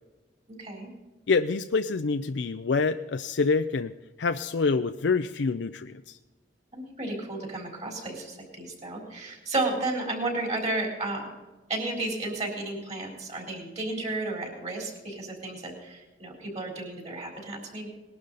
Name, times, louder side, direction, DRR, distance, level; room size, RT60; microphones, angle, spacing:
voice 1, 0.6-0.9 6.7-11.3 11.7-17.9, right 2 dB, 40° right, 1 dB, 4.1 m, -33 dB
voice 2, 1.3-6.2, left 4 dB, 80° left, 8 dB, 0.5 m, -26 dB
20.0 x 12.0 x 4.1 m, 1.2 s
head